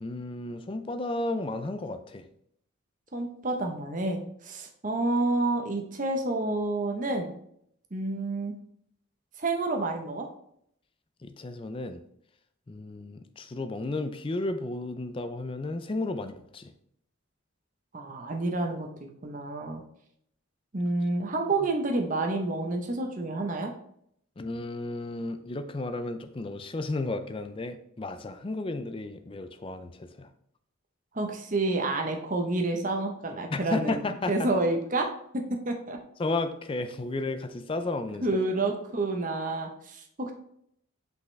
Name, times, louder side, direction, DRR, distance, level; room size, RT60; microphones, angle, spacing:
voice 1, 0.0-2.3 11.2-12.0 12.7-16.7 24.4-30.3 33.5-34.5 36.2-38.4, left 2 dB, 25° left, 9 dB, 0.4 m, -33 dB
voice 2, 3.1-7.3 7.9-8.5 9.4-10.3 17.9-19.8 20.7-23.7 31.1-34.0 34.3-35.1 35.3-36.0 38.2-40.3, right 2 dB, 35° right, 3 dB, 0.8 m, -29 dB
5.8 x 5.3 x 3.2 m, 0.71 s
head